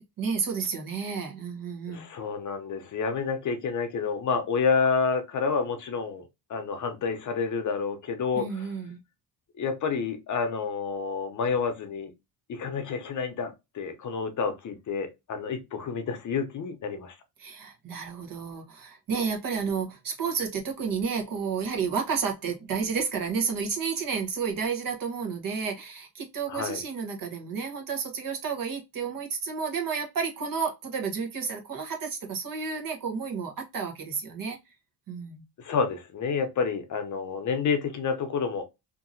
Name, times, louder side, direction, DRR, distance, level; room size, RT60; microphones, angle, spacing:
voice 1, 0.2-2.0 8.3-9.0 17.4-34.6 35.1-35.4, right 5 dB, 55° right, 1.0 m, -31 dB
voice 2, 1.9-8.7 9.6-12.1 12.5-17.2 26.5-26.8 35.6-38.6, left 5 dB, 45° left, 0.7 m, -29 dB
2.8 x 2.6 x 2.5 m
cardioid pair, 125°, 40 cm